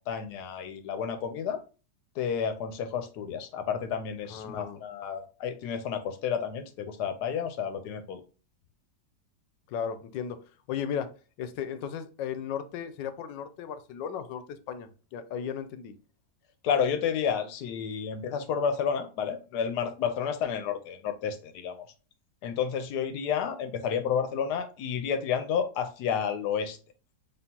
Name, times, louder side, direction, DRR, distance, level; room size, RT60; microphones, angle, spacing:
voice 1, 0.1-1.6 2.2-8.2 16.6-21.8 22.4-26.8, left 7 dB, 75° left, 1.2 m, -30 dB
voice 2, 4.3-4.8 9.7-10.4 10.7-11.1 11.4-15.9, left 8 dB, 90° left, 1.3 m, -35 dB
4.3 x 3.4 x 2.8 m
omnidirectional pair, 1.9 m